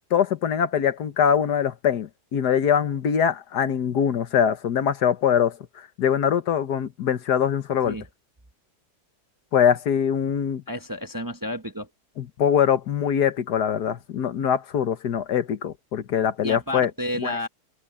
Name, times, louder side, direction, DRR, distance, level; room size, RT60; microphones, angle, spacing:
voice 1, 0.1-5.6 6.0-7.9 9.5-10.6 12.2-16.9 17.2-17.4, left 8 dB, 80° left, 1.7 m, -23 dB
voice 2, 10.7-11.9 16.4-17.5, left 1 dB, 15° right, 0.8 m, -31 dB
open air
omnidirectional pair, 1.7 m